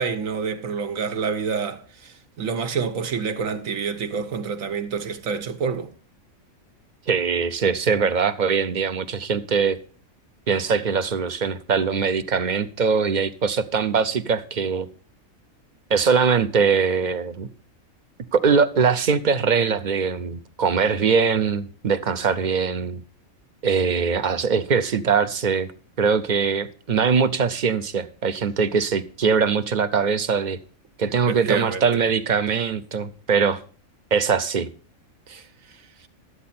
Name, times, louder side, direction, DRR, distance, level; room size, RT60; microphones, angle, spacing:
voice 1, 0.0-5.9 31.3-32.0 35.3-35.5, right 5 dB, 75° right, 1.4 m, -28 dB
voice 2, 7.1-9.8 10.5-14.9 15.9-17.5 18.3-23.0 23.6-25.7 26.0-30.6 31.0-33.6 34.1-34.7, right 5 dB, 45° right, 0.6 m, -22 dB
12.5 x 8.4 x 4.2 m
omnidirectional pair, 1.4 m